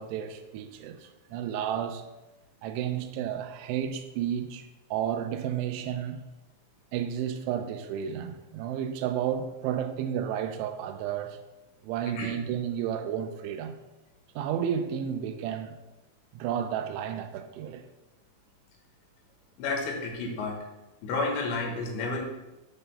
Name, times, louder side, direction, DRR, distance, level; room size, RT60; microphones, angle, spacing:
voice 1, 0.0-2.0 2.6-4.6 4.9-6.2 6.9-11.4 11.8-13.7 14.4-15.7 16.4-17.8, right 9 dB, 85° right, 3.0 m, -32 dB
voice 2, 19.6-20.6 21.0-22.2, left 3 dB, 75° left, 3.4 m, -31 dB
8.7 x 3.5 x 6.7 m
omnidirectional pair, 5.4 m